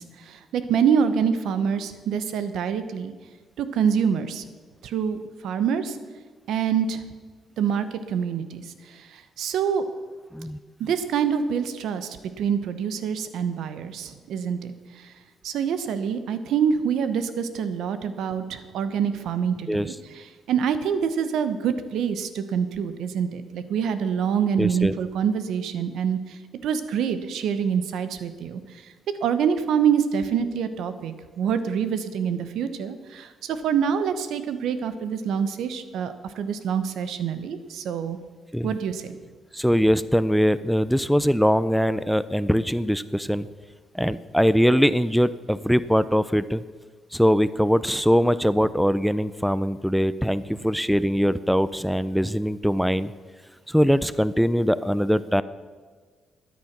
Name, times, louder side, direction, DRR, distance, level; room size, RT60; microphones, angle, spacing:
voice 1, 0.0-3.1 3.6-4.4 4.8-6.0 6.5-7.0 7.6-9.8 10.8-15.1 15.4-28.6 29.2-38.2 38.6-39.2, right 7 dB, 80° right, 11 dB, 1.0 m, -26 dB
voice 2, 24.6-24.9 38.5-38.7 39.5-43.5 43.9-46.6 47.1-53.1 53.7-55.4, equal, ahead, 16 dB, 0.4 m, -22 dB
13.0 x 9.6 x 6.0 m, 1.5 s
cardioid pair, 90°, 0 cm